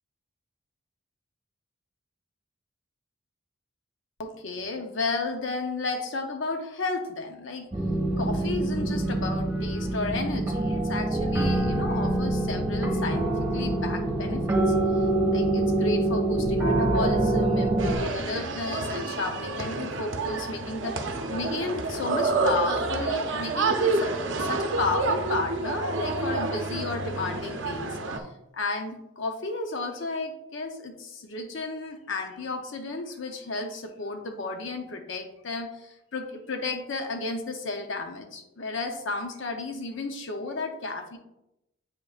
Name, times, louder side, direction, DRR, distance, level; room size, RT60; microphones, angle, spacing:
voice 1, 4.2-7.7 8.2-14.7 15.3-28.3 28.5-41.2, left 3 dB, 60° left, 5 dB, 0.7 m, -33 dB
sound 1, 7.7-17.9, right 2 dB, 15° right, 1.5 m, -25 dB
sound 2, 17.8-28.2, right 3 dB, 60° right, 0.6 m, -29 dB
8.2 x 5.2 x 2.4 m, 0.88 s
head